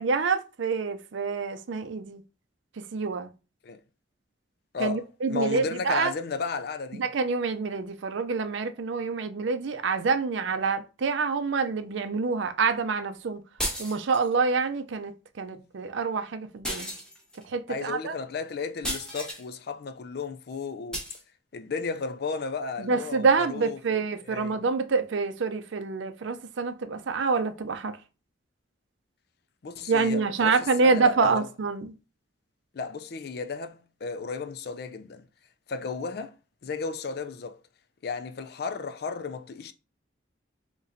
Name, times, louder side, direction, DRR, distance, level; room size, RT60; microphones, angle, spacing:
voice 1, 0.0-2.2 2.9-3.3 4.8-6.1 6.9-13.4 13.8-15.1 15.4-16.9 17.5-18.2 22.8-27.9 29.9-31.9, right 4 dB, 70° right, 0.5 m, -27 dB
voice 2, 4.7-7.1 17.7-21.1 21.5-24.6 29.6-31.5 32.7-35.3 35.7-36.3 36.6-37.6 38.0-39.7, left 4 dB, 50° left, 0.4 m, -34 dB
sound 1, 13.6-14.3 16.6-17.4 18.8-19.4 20.9-21.2, equal, 5° left, 1.0 m, -33 dB
4.1 x 3.0 x 2.6 m
head